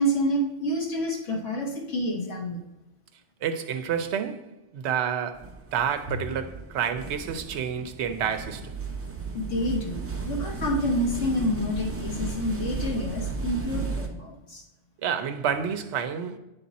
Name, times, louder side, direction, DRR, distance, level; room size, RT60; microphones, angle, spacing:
voice 1, 0.0-2.6 9.3-14.6, equal, 90° left, 1.6 m, -28 dB
voice 2, 3.4-8.7 15.0-16.4, right 7 dB, 70° right, 0.9 m, -29 dB
sound 1, 5.3-14.1, right 4 dB, 20° right, 0.4 m, -34 dB
9.4 x 3.7 x 4.0 m
omnidirectional pair, 1.2 m